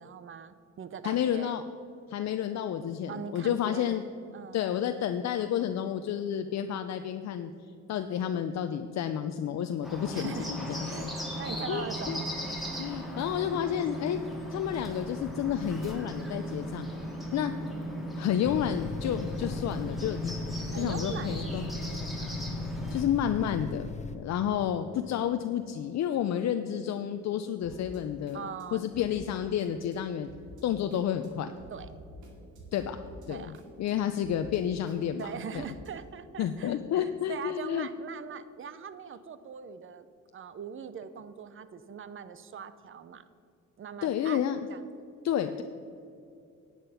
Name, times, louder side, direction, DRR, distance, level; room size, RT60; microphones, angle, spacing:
voice 1, 0.0-1.6 3.1-4.0 4.3-4.7 10.1-10.5 10.8-11.1 11.4-12.3 20.7-22.3 28.3-28.9 31.7-31.9 33.3-33.6 35.2-40.1 40.3-43.2 43.8-44.4 44.7-44.9, right 7 dB, 45° right, 13 dB, 0.7 m, -41 dB
voice 2, 1.0-1.6 2.1-4.0 4.5-7.5 7.9-11.1 11.7-12.2 12.8-14.2 14.5-16.9 17.3-17.5 18.2-21.7 22.9-30.3 30.6-31.5 32.7-33.0 33.3-33.5 33.8-35.3 36.4-37.9 44.0-44.6 45.2-45.6, left 9 dB, 60° left, 8 dB, 0.6 m, -30 dB
Bird, 9.8-23.0, equal, ahead, 2.5 m, -37 dB
sound 1, 18.4-24.2, left 5 dB, 25° left, 1.0 m, -39 dB
sound 2, 24.6-35.9, equal, 80° right, 2.4 m, -53 dB
10.0 x 8.9 x 5.7 m, 2.5 s
cardioid pair, 90°, 30 cm